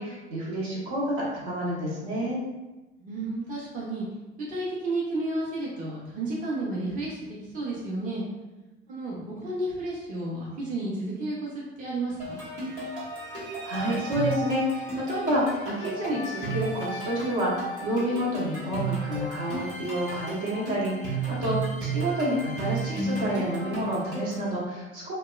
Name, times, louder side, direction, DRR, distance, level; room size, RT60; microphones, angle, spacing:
voice 1, 0.0-2.4 13.4-25.1, equal, 55° right, -5 dB, 1.0 m, -29 dB
voice 2, 3.0-4.1 4.4-8.2 8.9-12.4, right 2 dB, 25° right, -5 dB, 0.6 m, -32 dB
sound 1, 12.2-24.5, right 3 dB, 90° right, 1.0 m, -33 dB
2.7 x 2.2 x 2.3 m, 1.1 s
figure-of-eight pair, 65°, 33 cm